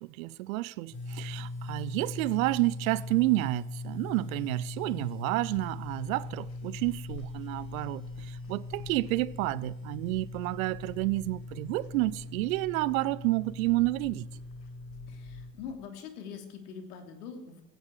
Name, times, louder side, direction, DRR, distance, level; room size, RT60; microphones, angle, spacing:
voice 1, 0.0-14.3, right 19 dB, 55° right, 0.7 m, -30 dB
sound 1, 0.9-15.5, left 2 dB, 25° left, 5.4 m, -41 dB
sound 2, 5.5-15.8, left 6 dB, 80° left, 1.5 m, -51 dB
voice 2, 15.1-17.6, left 6 dB, 65° left, 3.2 m, -43 dB
17.0 x 17.0 x 4.9 m
figure-of-eight pair, 70°, 49 cm